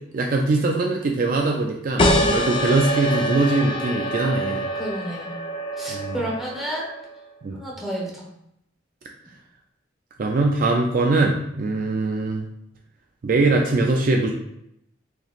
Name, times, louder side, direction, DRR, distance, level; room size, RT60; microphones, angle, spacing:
voice 1, 0.1-4.7 5.9-6.2 7.4-7.6 10.2-12.5 13.2-14.3, right 2 dB, 45° right, 1 dB, 0.3 m, -22 dB
sound 1, 2.0-7.2, equal, 25° left, 0.4 m, -25 dB
voice 2, 4.7-5.3 5.7-6.9 7.6-8.3, right 1 dB, ahead, -5 dB, 0.9 m, -30 dB
4.0 x 3.0 x 2.4 m, 0.79 s
head